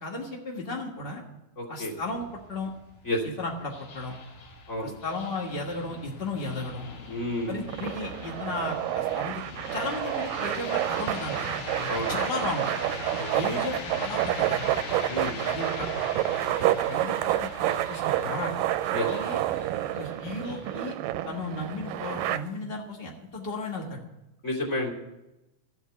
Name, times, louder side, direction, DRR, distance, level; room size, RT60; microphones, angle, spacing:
voice 1, 0.0-1.2 1.7-2.7 3.2-4.1 4.8-6.9 7.5-9.4 9.7-11.5 12.1-12.7 13.3-14.6 15.5-15.9 16.6-18.5 19.0-19.4 19.9-21.0 21.2-24.0, left 2 dB, 45° left, -1 dB, 0.7 m, -35 dB
voice 2, 1.6-1.9 3.1-3.2 4.7-4.9 7.1-7.5 11.9-12.2 13.2-13.6 15.1-15.4 18.9-19.1 24.4-24.9, left 1 dB, 25° left, -1 dB, 2.7 m, -30 dB
sound 1, 2.0-20.8, left 3 dB, 70° left, 3.4 m, -41 dB
sound 2, 7.7-22.4, right 14 dB, 90° right, 2.3 m, -29 dB
14.5 x 8.0 x 8.2 m, 0.96 s
omnidirectional pair, 3.8 m